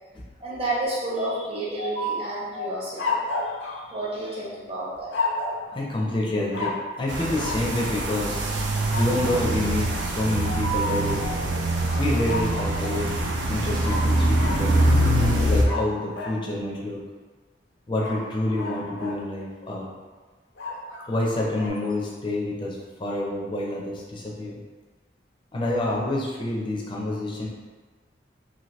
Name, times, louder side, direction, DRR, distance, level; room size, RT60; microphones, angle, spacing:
voice 1, 0.4-5.1, right 2 dB, 35° right, -6 dB, 0.8 m, -31 dB
voice 2, 1.8-2.1 2.5-2.7 5.7-8.4 9.0-11.5 12.0-13.1 13.5-14.9 15.5-17.0 17.9-19.9 21.1-24.6 25.5-27.5, left 1 dB, 25° left, -3 dB, 0.5 m, -28 dB
sound 1, 2.9-4.5 5.1-5.7 6.5-6.9 7.3-7.7 8.9-9.4 11.9-13.1 13.8-16.4 18.0-19.2 20.6-21.7, left 3 dB, 75° left, 0.6 m, -32 dB
sound 2, 7.1-15.7, right 1 dB, 75° right, 0.4 m, -24 dB
2.7 x 2.6 x 3.1 m, 1.4 s
head